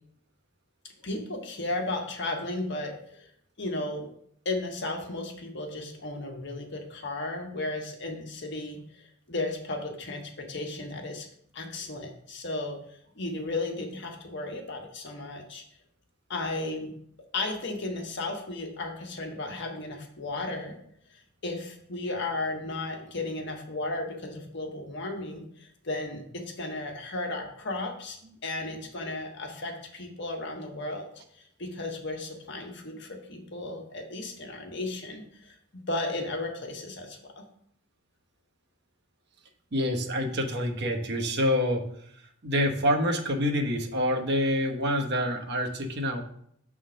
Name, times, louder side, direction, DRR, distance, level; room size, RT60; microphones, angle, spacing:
voice 1, 1.0-3.3 3.6-4.1 4.4-11.3 11.5-15.6 16.3-16.9 17.3-20.8 21.4-28.2 28.4-31.1 31.4-37.4, left 2 dB, 60° left, 2 dB, 1.3 m, -34 dB
voice 2, 39.7-41.8 42.4-46.2, equal, 55° right, 2 dB, 1.0 m, -27 dB
6.4 x 3.7 x 6.1 m, 0.69 s
head